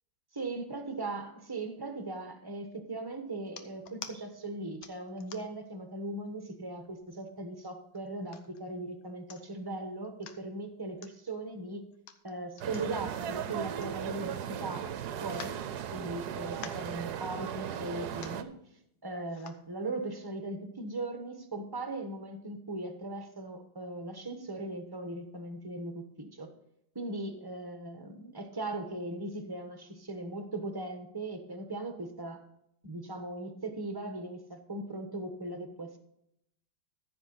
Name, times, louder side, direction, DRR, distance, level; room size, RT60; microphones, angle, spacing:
voice 1, 0.3-11.8 12.2-14.9 15.2-15.6 15.9-18.5 19.0-26.5 26.9-32.4 32.8-36.0, right 2 dB, 15° right, 6 dB, 0.8 m, -39 dB
sound 1, 3.5-4.2 4.8-5.7 6.2-6.3 6.7-7.3 7.9-8.6 9.0-9.1 9.3-9.7 10.0-10.4 11.0-11.1 11.9-14.4 14.7-14.8 15.2-16.2 16.5-16.9 17.7-17.8 18.1-18.5 19.3-19.6 20.2-20.3, left 8 dB, 85° left, 1.7 m, -48 dB
sound 2, 12.6-18.4, right 9 dB, 65° right, 1.1 m, -37 dB
14.5 x 6.9 x 4.0 m, 0.76 s
omnidirectional pair, 2.1 m